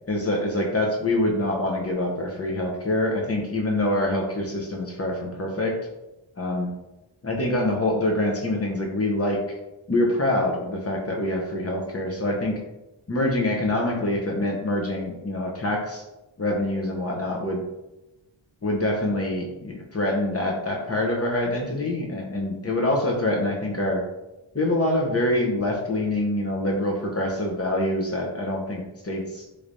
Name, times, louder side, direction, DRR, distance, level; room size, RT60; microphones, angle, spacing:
voice 1, 0.1-5.8 6.4-6.7 7.2-9.4 9.9-12.6 13.1-16.0 16.4-17.6 18.6-24.0 24.5-29.4, left 1 dB, 30° left, 0 dB, 0.7 m, -25 dB
3.2 x 3.2 x 2.6 m, 0.98 s
wide cardioid pair, 55°, 48 cm